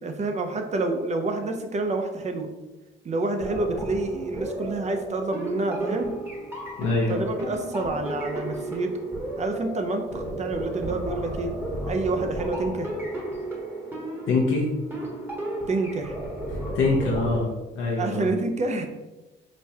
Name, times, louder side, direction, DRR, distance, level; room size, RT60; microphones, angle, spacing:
voice 1, 0.0-2.5 3.0-6.1 7.1-9.0 9.4-11.5 11.9-12.9 15.7-16.2 18.0-18.9, right 2 dB, 35° right, 5 dB, 0.6 m, -28 dB
sound 1, 3.4-17.4, right 1 dB, 10° right, 1.1 m, -33 dB
voice 2, 6.8-7.1 14.3-14.7 16.7-17.5 17.7-18.2, left 3 dB, 80° left, -3 dB, 0.7 m, -23 dB
5.0 x 2.3 x 2.8 m, 1.1 s
cardioid pair, 90°, 20 cm